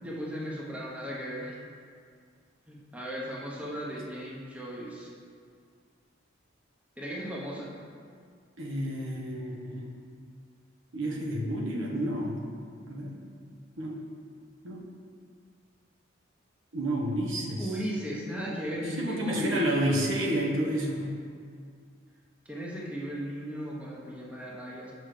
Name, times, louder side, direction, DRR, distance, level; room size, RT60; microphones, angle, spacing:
voice 1, 0.0-1.6 2.7-5.1 7.0-7.9 17.6-19.9 22.4-24.9, equal, 5° right, -5 dB, 1.0 m, -36 dB
voice 2, 8.6-9.9 10.9-12.4 12.9-13.1 13.8-14.0 14.6-14.8 16.7-17.7 19.0-21.1, right 1 dB, 80° right, -2 dB, 1.3 m, -30 dB
6.2 x 5.9 x 5.0 m, 2.1 s
head